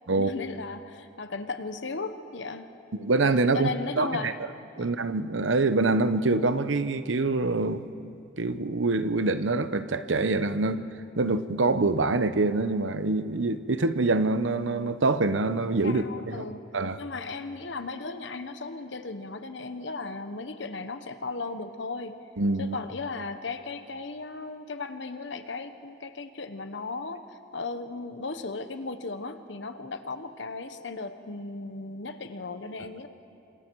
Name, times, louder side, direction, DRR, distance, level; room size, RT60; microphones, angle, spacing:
voice 1, 0.1-2.7 3.5-4.4 4.8-4.9 15.8-16.6 17.0-22.2 22.6-33.1, left 3 dB, 75° left, 9 dB, 1.0 m, -36 dB
voice 2, 3.0-4.3 4.8-8.1 8.4-10.9 11.2-16.5 16.7-17.0 22.4-22.8, right 3 dB, 85° right, 12 dB, 0.8 m, -25 dB
28.5 x 26.0 x 4.7 m, 2.6 s
head